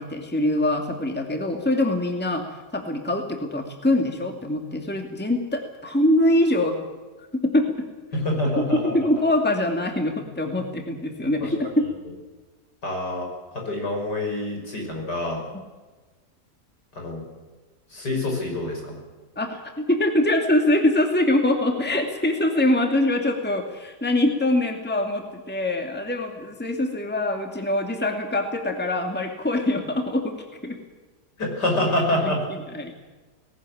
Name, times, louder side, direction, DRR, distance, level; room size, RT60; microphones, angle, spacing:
voice 1, 0.0-2.4 2.7-6.8 7.3-7.9 8.6-11.8 19.4-30.8 32.1-33.0, left 1 dB, 5° left, 3 dB, 2.4 m, -24 dB
voice 2, 8.1-9.1 11.4-11.7 12.8-13.3 13.5-15.4 16.9-17.2 17.9-19.0 31.4-32.4, left 1 dB, 90° left, 1 dB, 6.4 m, -26 dB
19.0 x 18.0 x 8.7 m, 1.3 s
omnidirectional pair, 1.8 m